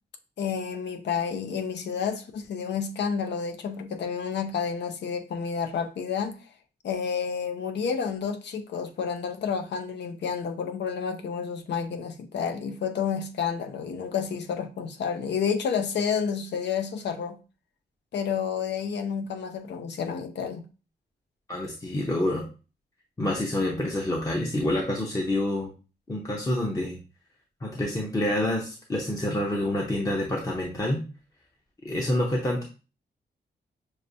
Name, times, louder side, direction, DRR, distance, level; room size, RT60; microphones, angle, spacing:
voice 1, 0.4-6.4 6.8-17.4 18.1-20.6, left 6 dB, 85° left, 0.6 m, -30 dB
voice 2, 21.5-22.5 23.2-25.7 26.1-27.0 27.6-31.0 31.8-32.6, left 1 dB, 20° left, 0.6 m, -27 dB
6.3 x 2.1 x 2.7 m
wide cardioid pair, 145°, 18 cm